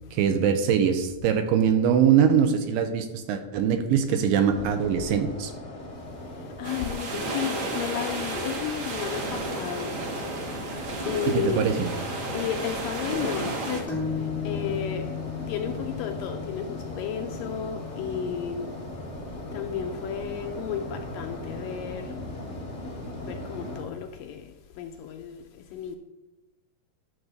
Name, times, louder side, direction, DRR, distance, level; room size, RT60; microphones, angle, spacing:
voice 1, 0.1-5.5 11.3-11.9, right 8 dB, 80° right, 2.3 m, -22 dB
sound 1, 4.5-23.8, left 1 dB, 45° left, 0.8 m, -38 dB
voice 2, 6.1-10.0 10.6-11.6 12.3-15.1 15.5-18.7 19.2-22.2 23.2-26.0, left 8 dB, 80° left, 2.1 m, -33 dB
sound 2, 6.6-13.8, right 2 dB, 60° right, 1.3 m, -33 dB
sound 3, 13.9-21.4, left 8 dB, ahead, 0.9 m, -37 dB
11.0 x 3.9 x 6.7 m
omnidirectional pair, 4.3 m